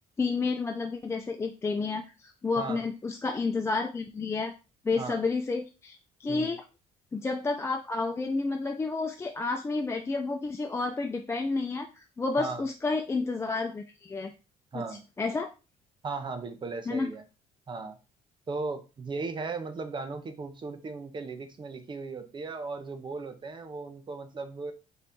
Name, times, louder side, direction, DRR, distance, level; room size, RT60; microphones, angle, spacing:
voice 1, 0.2-4.5 4.8-6.6 7.1-14.3 14.7-15.5 16.9-17.1, left 3 dB, 15° left, 4 dB, 0.3 m, -30 dB
voice 2, 14.7-15.0 16.0-17.2 17.7-18.0 18.5-24.7, right 4 dB, 30° right, 8 dB, 0.7 m, -37 dB
3.9 x 2.7 x 3.5 m, 0.31 s
cardioid pair, 110°, 17 cm